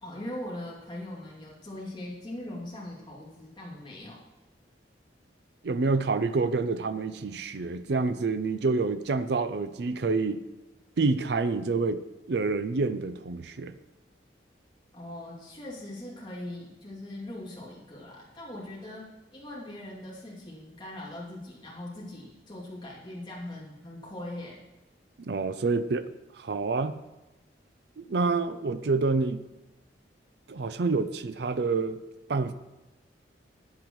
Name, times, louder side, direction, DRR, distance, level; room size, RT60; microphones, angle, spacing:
voice 1, 0.0-4.2 14.9-24.6, left 1 dB, 25° left, -6 dB, 2.7 m, -41 dB
voice 2, 5.6-10.4 11.0-12.0 12.3-13.7 25.2-26.1 26.4-26.9 28.0-29.4 30.5-32.0 32.3-32.5, right 3 dB, 65° right, 12 dB, 0.5 m, -27 dB
15.0 x 8.8 x 3.1 m, 1.1 s
head